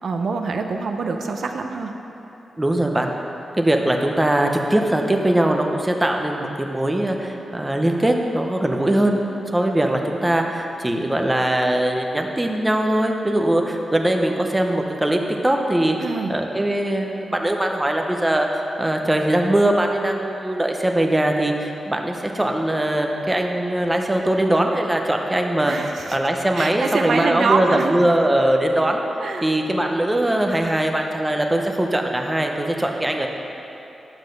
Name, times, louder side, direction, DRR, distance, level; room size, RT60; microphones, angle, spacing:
voice 1, 0.0-1.9 16.0-16.3 25.7-26.2 26.6-28.0 29.2-29.5, right 4 dB, 60° right, 4 dB, 0.6 m, -25 dB
voice 2, 2.6-3.1 3.6-9.2 9.5-15.9 16.3-18.5 18.8-29.0 29.4-33.3, right 1 dB, 10° right, 2 dB, 0.7 m, -21 dB
9.8 x 7.2 x 6.5 m, 2.9 s
wide cardioid pair, 160°, 0 cm